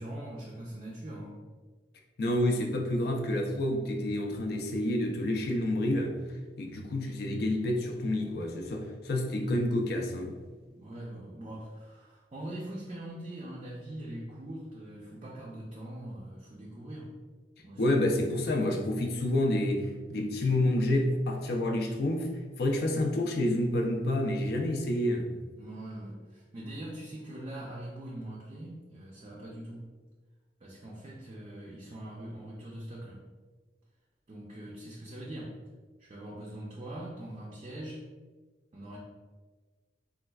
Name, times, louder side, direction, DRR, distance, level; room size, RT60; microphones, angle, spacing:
voice 1, 0.0-1.4 10.7-17.1 17.6-17.8 25.6-29.9 30.6-33.2 34.3-35.6 36.0-38.0 38.7-39.0, right 1 dB, 30° right, -4 dB, 0.4 m, -42 dB
voice 2, 2.2-6.2 6.6-10.5 17.8-22.3 22.6-25.4, left 1 dB, 60° left, 3 dB, 0.4 m, -29 dB
4.3 x 2.3 x 2.2 m, 1.3 s
head